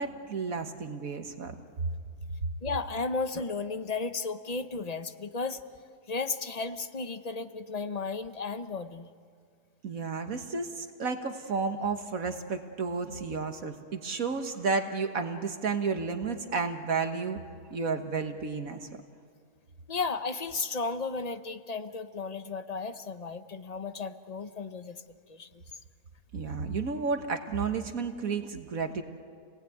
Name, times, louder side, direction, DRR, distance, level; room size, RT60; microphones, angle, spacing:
voice 1, 0.0-1.6 9.8-17.4 17.7-18.9 26.3-29.0, right 4 dB, 60° right, 6 dB, 1.7 m, -32 dB
voice 2, 2.6-5.6 6.1-9.1 19.9-25.0 25.3-25.6, left 4 dB, 35° left, 10 dB, 0.7 m, -34 dB
29.5 x 19.0 x 9.3 m, 2.1 s
omnidirectional pair, 1.7 m